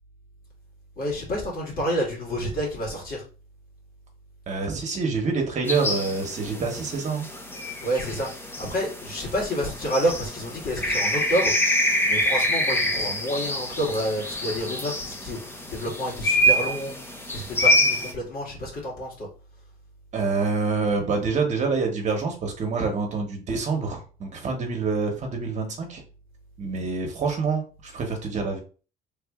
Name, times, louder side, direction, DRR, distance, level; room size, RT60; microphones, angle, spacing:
voice 1, 1.0-3.2 7.8-8.3 8.6-11.5 12.0-15.4 15.7-16.9 17.3-19.3, equal, 60° left, -2 dB, 2.1 m, -28 dB
voice 2, 4.5-7.3 20.1-26.0 26.6-28.6, right 4 dB, 45° right, 2 dB, 1.1 m, -26 dB
sound 1, 5.7-18.1, equal, 15° left, 0.8 m, -26 dB
3.4 x 2.6 x 3.6 m, 0.36 s
cardioid pair, 110°, 17 cm